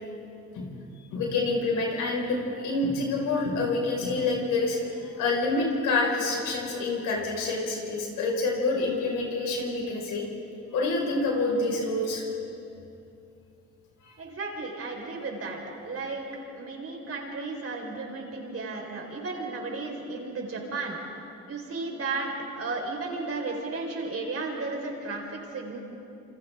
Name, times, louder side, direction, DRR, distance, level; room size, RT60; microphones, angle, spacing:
voice 1, 1.1-10.2 10.7-12.3 14.0-14.1, left 3 dB, 90° left, -1 dB, 5.4 m, -27 dB
voice 2, 14.2-15.6 15.8-21.0 21.5-25.8, right 3 dB, 50° right, 0 dB, 4.8 m, -34 dB
28.0 x 27.5 x 3.7 m, 2.7 s
cardioid pair, 90°, 30 cm